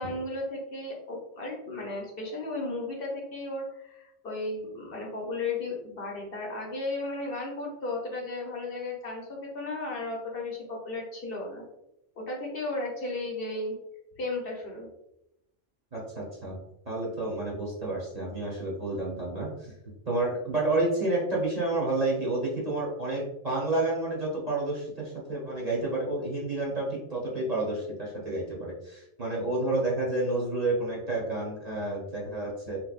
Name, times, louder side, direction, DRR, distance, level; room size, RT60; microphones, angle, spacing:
voice 1, 0.0-11.6 12.2-13.8 14.2-14.9, left 2 dB, 55° left, -1 dB, 0.9 m, -34 dB
voice 2, 15.9-16.5 16.9-19.7 20.1-32.8, right 2 dB, 35° right, -4 dB, 0.9 m, -30 dB
3.3 x 3.1 x 2.3 m, 0.85 s
omnidirectional pair, 1.2 m